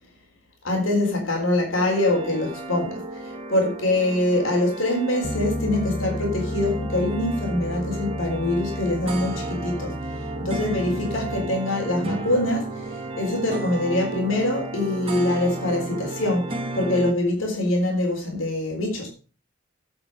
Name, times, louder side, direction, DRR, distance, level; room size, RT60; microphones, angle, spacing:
voice 1, 0.6-10.0 10.4-19.1, left 1 dB, 85° left, 3.9 m, -24 dB
sound 1, 1.7-17.1, right 2 dB, 25° right, 1.5 m, -33 dB
Bass guitar, 5.2-11.5, left 1 dB, 15° left, 1.1 m, -32 dB
9.0 x 7.7 x 5.6 m
head